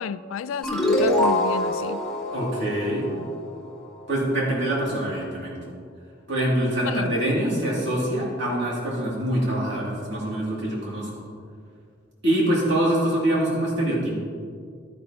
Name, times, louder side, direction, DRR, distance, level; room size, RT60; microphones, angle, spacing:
voice 1, 0.0-2.0 6.8-7.2, left 6 dB, 85° left, 16 dB, 0.3 m, -32 dB
sound 1, 0.6-3.8, left 1 dB, ahead, 2.0 m, -24 dB
voice 2, 2.3-3.1 4.1-5.6 6.3-11.2 12.2-14.2, right 1 dB, 60° right, -4 dB, 2.7 m, -24 dB
11.5 x 10.0 x 2.9 m, 2.2 s
head